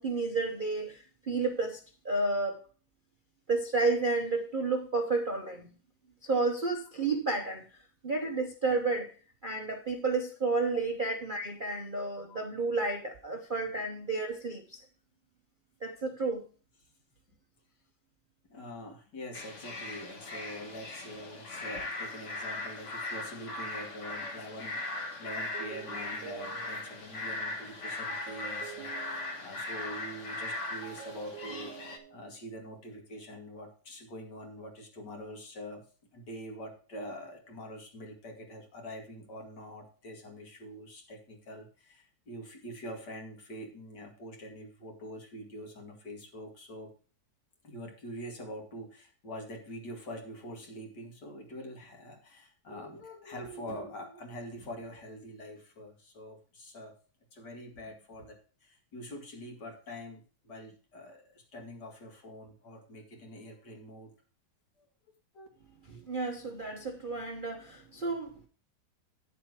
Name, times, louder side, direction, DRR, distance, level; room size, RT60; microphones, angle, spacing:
voice 1, 0.0-1.8 2.0-2.6 3.5-5.7 6.2-9.1 9.4-14.8 15.8-16.4 65.9-68.5, right 3 dB, 40° right, 0.8 m, -31 dB
voice 2, 18.5-35.8 36.1-46.9 47.6-56.9 57.3-64.1 64.8-64.9 65.3-65.5, equal, 65° left, 2.7 m, -45 dB
sound 1, 19.3-32.0, left 2 dB, 45° left, 1.5 m, -39 dB
sound 2, 25.4-27.1 28.1-29.8 30.8-32.5, right 9 dB, 75° right, 1.5 m, -47 dB
9.9 x 7.0 x 4.7 m
omnidirectional pair, 2.0 m